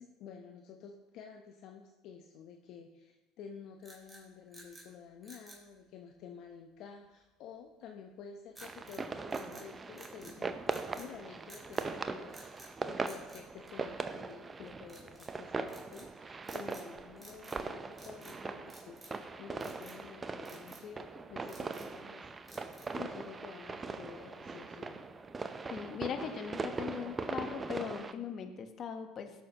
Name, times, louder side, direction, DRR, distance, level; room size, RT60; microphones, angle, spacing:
voice 1, 0.0-22.4 22.6-25.1, left 7 dB, 60° left, 3 dB, 0.8 m, -51 dB
sound 1, 3.8-4.9 5.2-5.7 8.5-9.0 9.3-10.4 10.7-11.1 11.5-11.9 12.3-12.7 13.0-14.2 14.9-15.3 15.7-16.1 16.4-16.9 17.2-17.7 17.9-18.4 18.7-19.2 19.6-20.0 20.4-20.9 21.3-22.0 22.5-23.0, right 1 dB, 10° right, 2.9 m, -55 dB
sound 2, 8.6-28.1, right 4 dB, 25° right, 0.7 m, -40 dB
voice 2, 25.7-29.3, left 7 dB, 45° left, 7 dB, 1.1 m, -39 dB
16.0 x 6.4 x 2.9 m, 1.1 s
hypercardioid pair, 75°, 0 cm